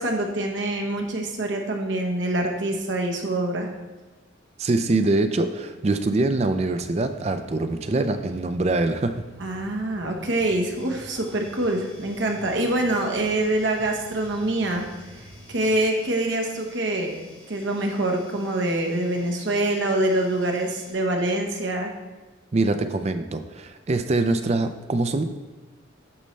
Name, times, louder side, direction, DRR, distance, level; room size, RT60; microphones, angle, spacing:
voice 1, 0.0-3.7 9.4-14.9 15.5-17.2 17.5-21.9, right 1 dB, 60° right, 2 dB, 1.0 m, -25 dB
voice 2, 4.6-9.1 22.5-25.2, right 2 dB, 30° right, 9 dB, 0.4 m, -24 dB
sound 1, 6.4-15.8, equal, 65° left, 2.1 m, -48 dB
sound 2, 10.7-20.9, left 2 dB, 20° left, 2.3 m, -51 dB
8.6 x 5.4 x 3.2 m, 1.2 s
head